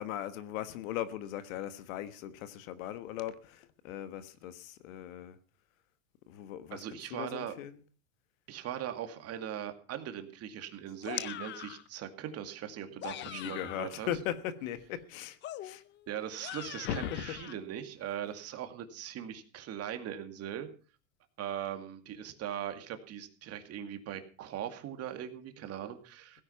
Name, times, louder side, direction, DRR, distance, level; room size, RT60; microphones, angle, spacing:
voice 1, 0.0-5.4 6.3-7.8 13.2-15.8 16.8-17.4, left 11 dB, 70° left, 1.4 m, -39 dB
voice 2, 6.7-7.5 8.5-14.1 16.1-20.7 21.4-26.4, right 10 dB, 35° right, 2.3 m, -40 dB
sound 1, 11.0-11.9 12.8-14.0 15.4-17.5, left 13 dB, 25° left, 0.6 m, -43 dB
17.0 x 9.9 x 5.8 m
supercardioid pair, 135°, 42 cm